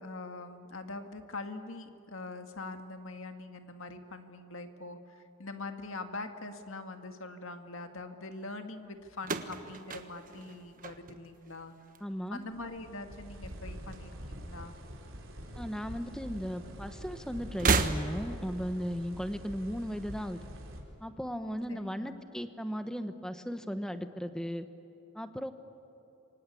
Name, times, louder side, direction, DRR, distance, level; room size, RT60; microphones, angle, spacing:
voice 1, 0.0-11.7 12.3-14.8 21.7-22.2, left 2 dB, 65° left, 6 dB, 2.0 m, -43 dB
sound 1, 9.2-11.5 11.8-12.4 13.5-14.5 14.8-14.9 16.0-16.1 17.5-18.5, right 3 dB, 40° right, 1.3 m, -32 dB
voice 2, 12.0-12.4 15.6-20.4 21.0-24.7 25.1-25.5, equal, 5° left, 9 dB, 1.1 m, -36 dB
sound 2, 12.5-20.8, equal, 65° right, 3.9 m, -45 dB
28.0 x 25.0 x 8.5 m, 3.0 s
head